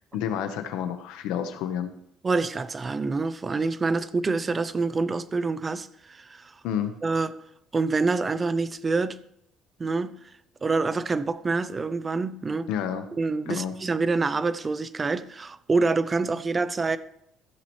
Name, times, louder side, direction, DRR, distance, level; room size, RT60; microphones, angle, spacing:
voice 1, 0.1-1.9 6.6-6.9 12.7-13.1 13.5-13.7, left 9 dB, 85° left, 1.2 m, -29 dB
voice 2, 2.2-6.5 7.0-7.3 7.7-9.2 9.8-10.1 10.6-12.7 13.1-17.0, right 3 dB, 20° right, 0.5 m, -26 dB
15.0 x 7.3 x 3.2 m
cardioid pair, 145°, 0 cm